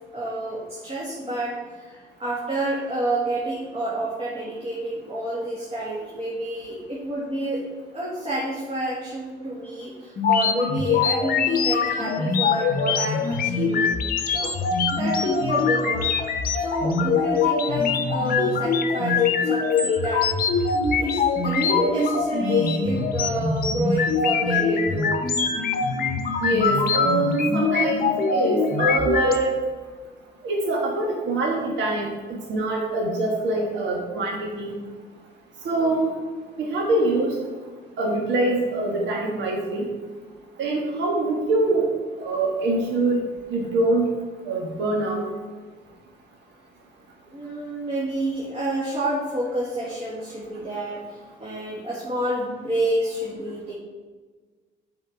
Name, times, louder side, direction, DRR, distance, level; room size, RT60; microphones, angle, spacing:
voice 1, 0.1-7.7 7.9-13.9 14.3-14.6 14.9-16.1 16.5-20.6 21.0-25.2 47.3-53.7, right 1 dB, 30° right, -5 dB, 1.8 m, -29 dB
sound 1, 10.2-29.4, left 5 dB, 50° left, 0.9 m, -23 dB
voice 2, 26.4-29.5 30.4-34.8 35.6-36.1 36.6-37.3 38.0-39.9 40.6-41.9 42.2-43.2 43.5-44.1 44.5-45.2, right 2 dB, 70° right, -1 dB, 1.5 m, -24 dB
7.9 x 4.4 x 5.8 m, 1.4 s
cardioid pair, 105°, 19 cm